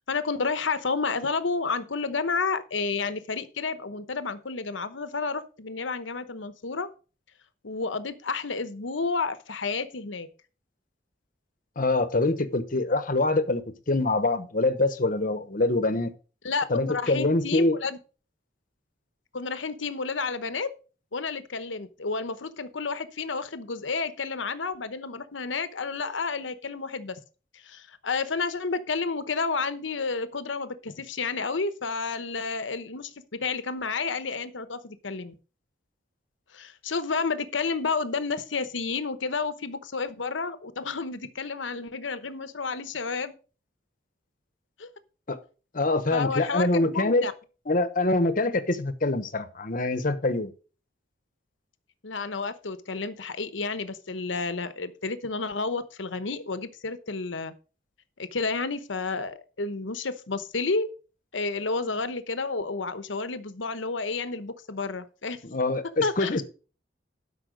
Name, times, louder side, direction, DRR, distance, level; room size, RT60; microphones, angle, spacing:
voice 1, 0.1-6.9 7.6-10.3 16.4-18.0 19.3-20.7 21.1-27.2 27.5-33.1 33.4-35.3 36.5-43.4 44.8-44.9 46.1-47.3 52.0-57.5 58.2-60.9 61.3-65.4 66.0-66.4, left 4 dB, 85° left, 12 dB, 1.0 m, -31 dB
voice 2, 11.8-16.1 16.7-17.8 45.3-45.4 45.7-47.3 47.7-50.5 65.4-66.4, left 2 dB, 45° left, 12 dB, 1.0 m, -25 dB
12.0 x 5.6 x 5.1 m, 0.36 s
head